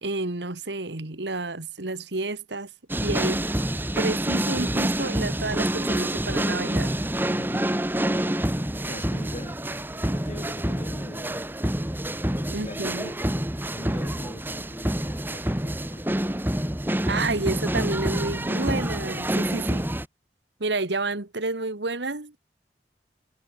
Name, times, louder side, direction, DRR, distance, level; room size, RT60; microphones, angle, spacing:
voice 1, 0.0-2.7 3.0-3.4 4.0-7.0 12.5-13.1 17.1-19.9 20.6-22.4, right 3 dB, 85° right, 1.9 m, -30 dB
sound 1, 2.9-20.0, right 1 dB, 10° right, 1.6 m, -27 dB
voice 2, 7.3-7.6 8.1-8.3 8.9-9.6 9.9-11.4 12.3-16.2, left 1 dB, 40° left, 4.4 m, -42 dB
head